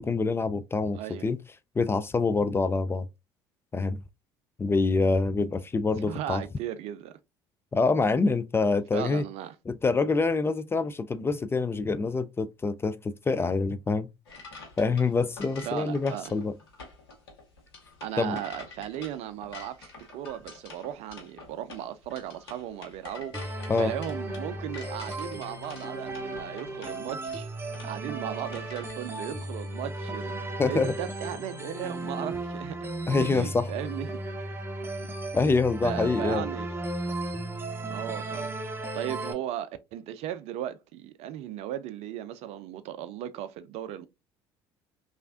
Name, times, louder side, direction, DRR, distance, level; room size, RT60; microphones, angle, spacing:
voice 1, 0.0-1.4 1.8-3.1 3.7-4.0 4.6-6.4 7.7-9.2 9.7-14.1 14.8-16.5 18.2-18.4 23.7-23.9 30.6-30.9 33.1-33.7 35.3-36.5, left 4 dB, 20° left, 0.3 m, -26 dB
voice 2, 0.9-1.3 6.1-7.2 8.9-9.5 15.6-16.3 18.0-23.4 23.8-27.5 27.8-32.8 33.2-34.2 35.4-35.5 35.8-36.7 37.9-38.5 38.9-44.1, right 11 dB, 60° right, 0.4 m, -36 dB
sound 1, 14.3-28.9, left 3 dB, 85° left, 0.9 m, -47 dB
sound 2, 23.3-39.3, right 2 dB, 20° right, 0.8 m, -35 dB
3.2 x 2.4 x 2.4 m
hypercardioid pair, 60°, 12 cm